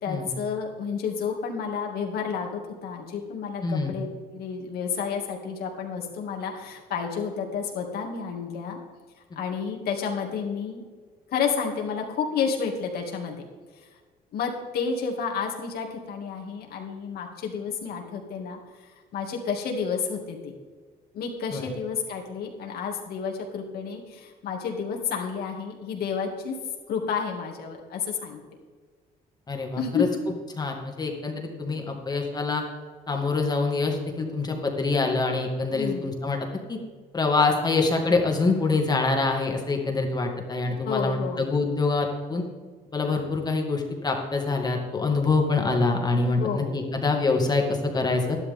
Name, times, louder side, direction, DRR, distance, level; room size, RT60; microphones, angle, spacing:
voice 1, 0.0-8.8 9.4-10.8 11.3-13.5 13.7-13.9 14.3-20.5 21.1-26.6 26.9-28.4 29.8-30.0 35.7-36.1 40.8-41.4 46.4-46.8, left 6 dB, 65° left, 1 dB, 2.5 m, -30 dB
voice 2, 3.6-3.9 21.5-21.6 29.5-30.1 30.6-32.6 33.1-36.8 37.1-42.4 42.9-48.4, left 3 dB, 25° left, 2 dB, 2.1 m, -25 dB
12.5 x 11.5 x 3.7 m, 1.5 s
cardioid pair, 110°, 17 cm